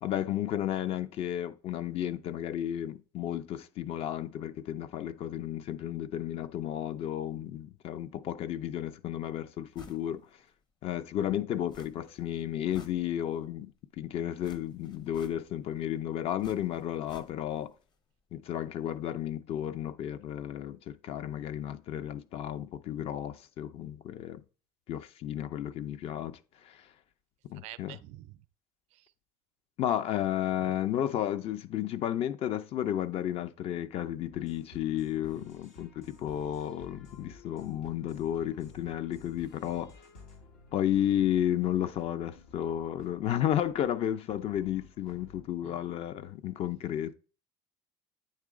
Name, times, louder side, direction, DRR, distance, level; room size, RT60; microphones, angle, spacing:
voice 1, 0.0-10.3 10.8-17.7 18.3-24.4 24.9-26.9 27.4-28.0 29.8-39.9 40.7-47.1, left 11 dB, 55° left, 0.5 m, -33 dB
sound 1, 9.7-10.1 10.5-10.6 11.7-12.2 12.5-13.5 14.4-15.7 16.4-17.7 17.9-18.0, left 3 dB, 40° left, 0.9 m, -53 dB
voice 2, 27.6-28.4 28.9-29.1 30.6-30.8 35.4-35.5 45.6-45.8, right 16 dB, 70° right, 0.4 m, -47 dB
sound 2, 34.3-45.4, left 4 dB, 80° left, 1.4 m, -54 dB
8.7 x 3.2 x 3.7 m
supercardioid pair, 95°, 12 cm